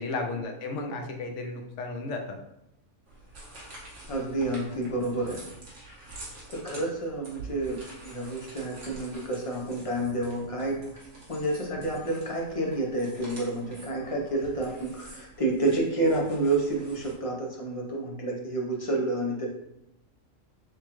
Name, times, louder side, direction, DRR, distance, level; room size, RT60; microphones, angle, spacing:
voice 1, 0.0-2.4, left 3 dB, 65° left, 3 dB, 0.9 m, -33 dB
sound 1, 3.1-17.1, right 2 dB, 60° right, 1.5 m, -47 dB
voice 2, 4.1-5.4 6.5-10.8 11.3-19.5, right 2 dB, 35° left, -2 dB, 0.6 m, -29 dB
6.3 x 2.3 x 3.0 m, 0.81 s
omnidirectional pair, 1.5 m